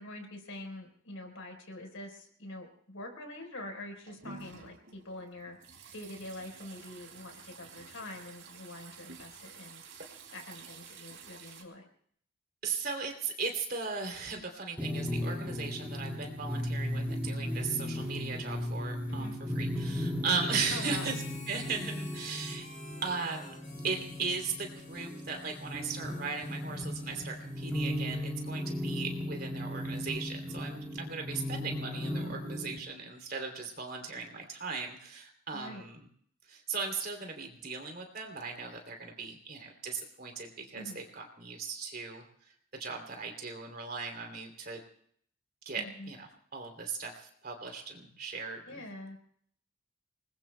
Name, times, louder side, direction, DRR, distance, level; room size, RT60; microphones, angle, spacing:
voice 1, 0.0-5.6 5.9-9.8 10.3-11.9 19.1-19.4 20.7-21.1 31.8-32.4 35.5-35.8 40.7-41.0 45.7-46.1 48.7-49.2, left 1 dB, 90° left, 3 dB, 4.3 m, -45 dB
sound 1, 3.8-11.6, right 5 dB, 70° right, 2.8 m, -51 dB
voice 2, 12.6-19.3 19.5-21.2 21.5-22.7 23.0-23.6 23.8-36.1 36.5-44.8 45.6-48.8, right 4 dB, 45° right, 3 dB, 3.0 m, -37 dB
sound 2, 14.8-32.8, left 1 dB, 10° right, 2.1 m, -36 dB
Harmonica, 20.7-28.4, left 3 dB, 40° left, 4.1 m, -52 dB
28.0 x 20.5 x 2.3 m, 0.63 s
head